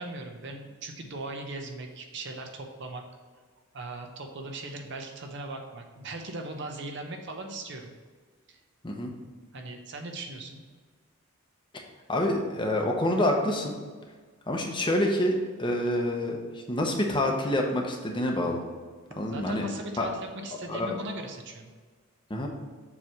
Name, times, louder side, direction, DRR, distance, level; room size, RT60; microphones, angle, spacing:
voice 1, 0.0-3.0 3.7-7.9 8.5-8.6 9.5-10.6 19.3-21.7, right 2 dB, 55° right, 4 dB, 0.8 m, -38 dB
voice 2, 12.1-13.7 14.5-18.6 19.2-19.6 20.0-20.1 20.7-20.9 22.3-22.5, left 1 dB, 20° left, 1 dB, 0.8 m, -27 dB
7.1 x 3.3 x 6.1 m, 1.5 s
head